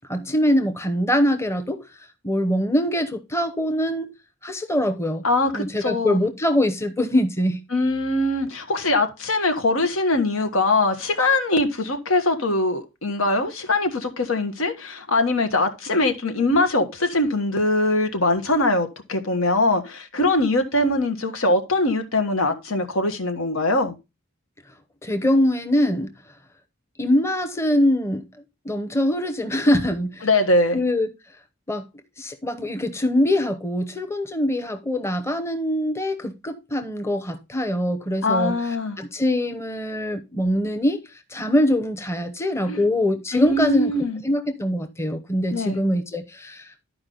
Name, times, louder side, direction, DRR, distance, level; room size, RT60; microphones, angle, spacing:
voice 1, 0.1-1.8 2.2-4.1 4.4-5.2 5.5-7.6 25.0-26.1 27.0-28.3 28.6-30.3 30.7-31.1 31.7-31.8 32.2-38.6 39.0-41.0 41.3-46.9, left 1 dB, 15° left, 0.8 m, -23 dB
voice 2, 5.2-6.2 7.7-23.9 30.2-30.8 38.2-39.0 42.7-42.8 43.3-44.2 45.5-45.8, left 2 dB, 90° left, 1.3 m, -22 dB
11.5 x 4.9 x 3.9 m
head